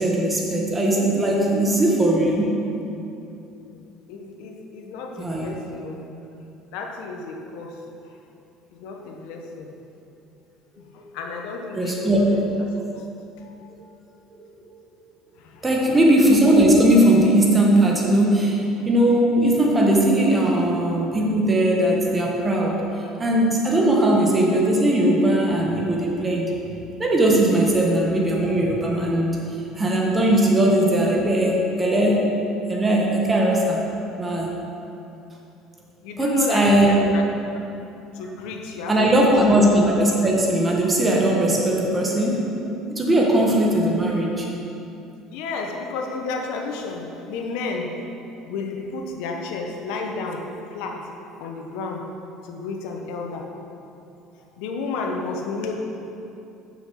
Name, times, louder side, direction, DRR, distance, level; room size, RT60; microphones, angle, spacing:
voice 1, 0.0-2.6 5.2-5.5 11.0-11.1 11.7-12.2 15.6-18.6 18.8-22.8 23.2-26.5 27.0-29.4 29.8-32.3 32.7-33.8 34.2-34.5 36.2-37.0 38.9-42.5 42.9-44.5, right 1 dB, 15° right, -1 dB, 1.5 m, -19 dB
voice 2, 3.7-6.1 6.7-7.8 8.8-9.7 11.1-12.4 12.9-13.1 13.4-13.6 15.4-15.6 36.0-37.3 38.1-39.0 39.2-39.3 45.3-47.9 48.5-50.4 50.7-51.0 51.4-52.0 52.4-53.5 54.6-55.7, left 4 dB, 80° left, 2 dB, 1.1 m, -32 dB
7.0 x 6.3 x 6.4 m, 2.8 s
cardioid pair, 130°, 0 cm